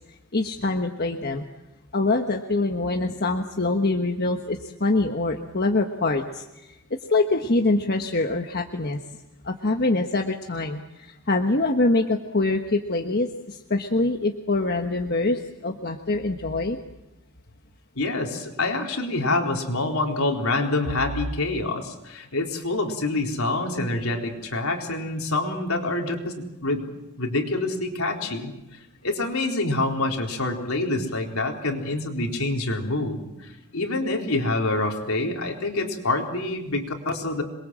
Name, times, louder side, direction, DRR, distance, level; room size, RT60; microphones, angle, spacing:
voice 1, 0.3-1.4 1.9-6.8 7.1-9.0 9.4-16.8, left 2 dB, 45° left, 4 dB, 1.3 m, -24 dB
voice 2, 18.0-28.5 29.0-37.4, left 2 dB, 75° left, 2 dB, 3.9 m, -26 dB
27.0 x 22.0 x 7.6 m, 0.94 s
head